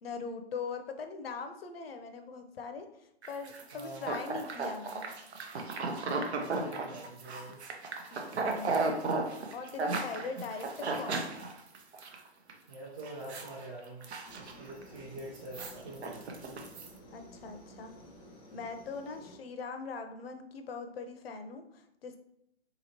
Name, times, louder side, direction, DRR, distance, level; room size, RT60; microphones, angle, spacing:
voice 1, 0.0-5.2 8.1-11.4 17.1-18.0 18.5-22.2, left 4 dB, 60° left, 7 dB, 0.6 m, -41 dB
sound 1, 3.2-12.1 12.5-12.7 13.0-13.6 13.9-14.8 15.2-16.9, right 3 dB, 70° right, 0.7 m, -35 dB
voice 2, 3.7-4.1 6.3-7.6 12.7-14.1 14.4-16.6, right 1 dB, 30° right, -7 dB, 0.7 m, -45 dB
Aircraft, 14.2-19.4, equal, 10° left, 0.5 m, -53 dB
3.9 x 2.9 x 2.8 m, 0.76 s
hypercardioid pair, 150°, 34 cm